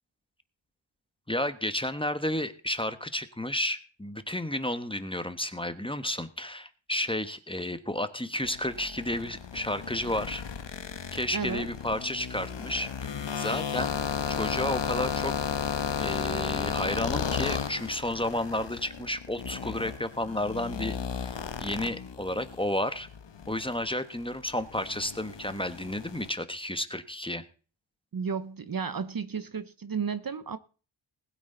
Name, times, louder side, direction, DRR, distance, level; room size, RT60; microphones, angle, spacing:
voice 1, 1.3-10.4 11.1-14.0 14.3-15.5 16.0-23.1 23.5-27.4, left 1 dB, 10° left, 1.2 m, -32 dB
sound 1, 8.4-22.6 22.9-26.3, left 7 dB, 60° left, 1.3 m, -34 dB
voice 2, 11.3-11.7 28.1-30.6, right 6 dB, 45° right, 0.9 m, -33 dB
20.0 x 8.8 x 3.9 m
wide cardioid pair, 75°, 48 cm